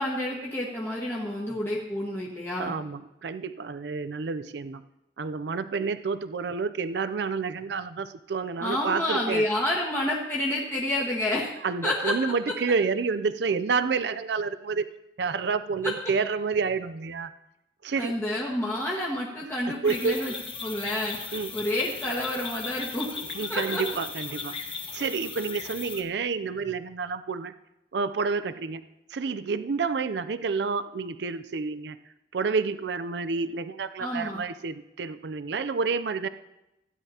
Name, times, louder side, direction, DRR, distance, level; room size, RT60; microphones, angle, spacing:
voice 1, 0.0-2.7 8.6-11.5 11.8-12.1 15.8-15.9 18.0-20.3 20.6-21.2 21.5-23.1 23.5-23.8 34.0-34.4, left 1 dB, 15° left, -6 dB, 1.5 m, -29 dB
voice 2, 2.6-4.8 5.2-9.4 11.6-14.9 15.2-17.3 17.8-18.2 19.7-20.4 21.3-21.5 23.2-24.6 24.9-27.5 27.9-28.8 29.1-32.0 32.3-36.3, right 5 dB, 70° right, 12 dB, 0.5 m, -29 dB
sound 1, 19.8-26.0, left 5 dB, 30° left, 1.2 m, -37 dB
16.0 x 10.0 x 2.8 m, 0.90 s
head